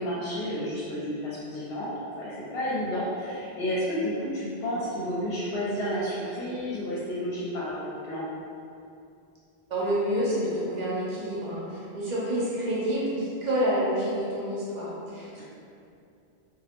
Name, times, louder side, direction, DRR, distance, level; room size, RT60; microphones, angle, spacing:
voice 1, 0.0-8.2 15.4-15.5, equal, 70° left, -8 dB, 0.8 m, -31 dB
voice 2, 9.7-15.4, equal, 50° right, -7 dB, 0.6 m, -28 dB
2.4 x 2.0 x 2.8 m, 2.6 s
omnidirectional pair, 1.1 m